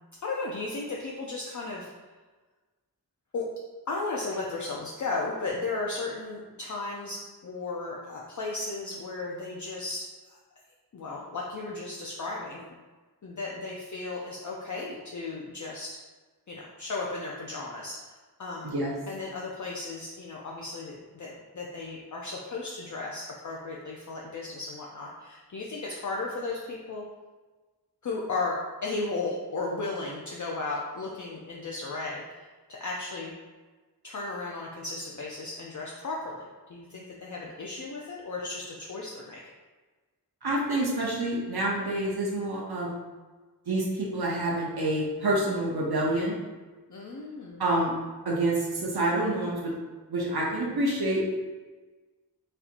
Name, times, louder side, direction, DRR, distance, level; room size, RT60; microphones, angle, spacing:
voice 1, 0.2-1.9 3.3-3.4 3.9-10.4 10.9-12.6 13.2-16.0 16.5-18.1 18.4-18.7 19.1-27.0 28.0-33.4 34.0-39.4 46.9-47.6, left 3 dB, 50° left, -3 dB, 0.5 m, -35 dB
voice 2, 40.4-42.9 43.7-46.4 47.6-47.9 48.2-49.7 50.1-51.2, right 1 dB, 70° right, -4 dB, 0.7 m, -27 dB
4.2 x 2.6 x 2.5 m, 1.3 s
wide cardioid pair, 45°, 39 cm